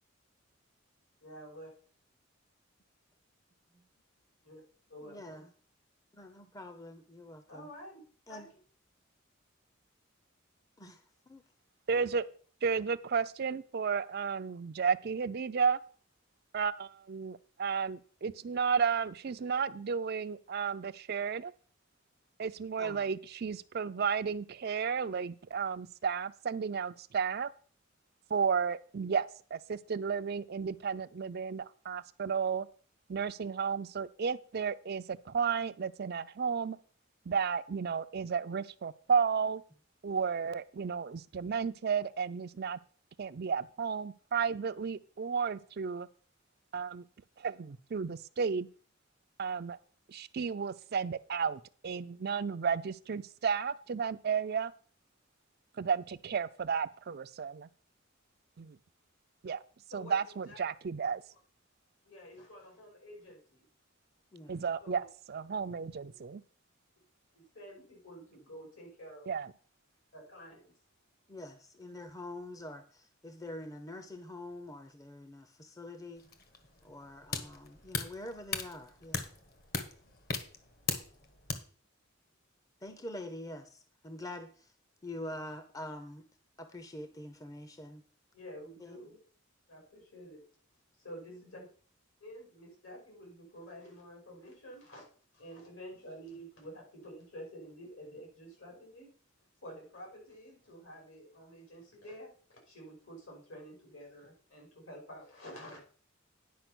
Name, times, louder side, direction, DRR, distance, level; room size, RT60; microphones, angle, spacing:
voice 1, 1.2-1.7 4.4-4.6 4.9-5.5 7.5-8.0 8.3-8.5 59.9-60.2 60.5-60.6 62.0-63.6 64.8-65.0 67.3-69.3 70.1-70.7 88.3-89.2 89.7-90.4 91.0-91.6 92.2-95.1 95.3-99.1 99.6-105.8, equal, 80° left, -1 dB, 6.0 m, -49 dB
voice 2, 5.0-5.4 6.1-7.7 8.3-8.5 10.8-11.4 22.8-23.0 64.3-64.6 71.3-76.2 76.8-79.3 82.8-84.7 85.0-86.2 86.6-88.0 88.8-89.0 91.5-91.7, left 1 dB, 15° left, 9 dB, 0.6 m, -45 dB
voice 3, 11.9-12.2 12.6-15.8 16.5-21.5 22.4-27.5 28.3-32.7 33.1-36.8 37.3-39.6 40.0-42.8 43.2-46.1 46.7-47.1 47.4-48.7 49.4-49.8 50.1-54.7 55.8-57.7 58.6-58.8 59.4-59.6 59.9-61.2 64.5-66.4 69.3-69.5, right 6 dB, 50° right, 13 dB, 0.4 m, -33 dB
sound 1, 76.2-81.5, left 4 dB, 45° left, 1.3 m, -38 dB
10.5 x 5.2 x 6.1 m, 0.43 s
head